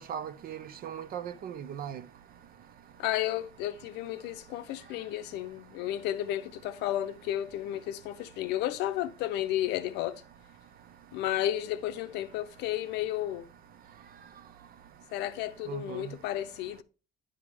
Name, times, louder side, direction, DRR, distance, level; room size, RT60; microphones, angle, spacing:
voice 1, 0.0-2.0 15.7-16.1, right 8 dB, 60° right, 0.7 m, -38 dB
voice 2, 3.0-10.2 11.1-13.5 15.1-16.8, left 13 dB, 90° left, 0.6 m, -32 dB
10.0 x 3.5 x 4.7 m
cardioid pair, 110°, 17 cm